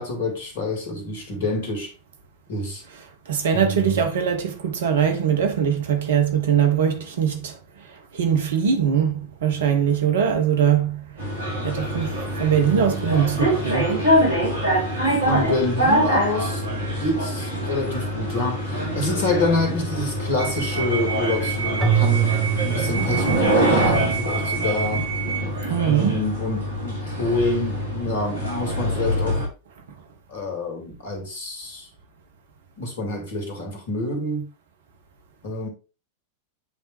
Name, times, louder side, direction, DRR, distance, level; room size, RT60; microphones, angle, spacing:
voice 1, 0.0-1.9 2.5-2.8 3.5-4.0 13.0-13.3 15.3-16.6 17.0-25.1 25.8-29.4 30.3-31.9 32.8-34.5 35.4-35.7, left 2 dB, 55° left, 2.1 m, -27 dB
voice 2, 3.3-7.6 8.1-11.1 11.6-14.0 25.7-26.2, right 8 dB, 60° right, 1.1 m, -21 dB
sound 1, 11.2-29.5, right 1 dB, 75° right, 2.2 m, -24 dB
Keyboard (musical), 21.8-24.1, right 9 dB, 5° left, 1.1 m, -24 dB
8.3 x 3.5 x 3.2 m
figure-of-eight pair, 90°, 0 cm